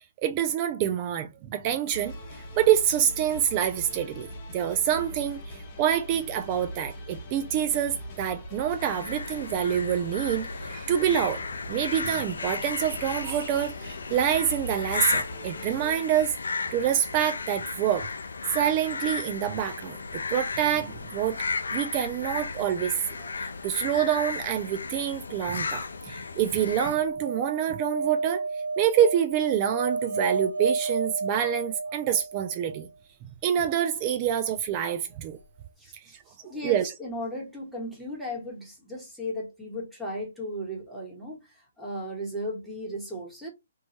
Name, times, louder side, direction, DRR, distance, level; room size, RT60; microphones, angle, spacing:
voice 1, 0.2-2.1 2.6-5.4 5.8-11.4 11.7-16.3 16.7-18.1 18.5-21.4 21.7-28.4 28.8-32.9 33.4-35.4 36.6-36.9, right 10 dB, 30° right, 0.4 m, -26 dB
sound 1, 1.9-15.9, equal, 35° left, 0.9 m, -41 dB
sound 2, 8.8-26.9, left 4 dB, 80° left, 0.5 m, -34 dB
sound 3, 26.7-32.8 35.1-35.2 35.4-35.5, right 4 dB, 85° right, 0.6 m, -31 dB
voice 2, 35.8-43.5, equal, ahead, 1.1 m, -36 dB
3.1 x 2.2 x 2.8 m
hypercardioid pair, 150°, 0 cm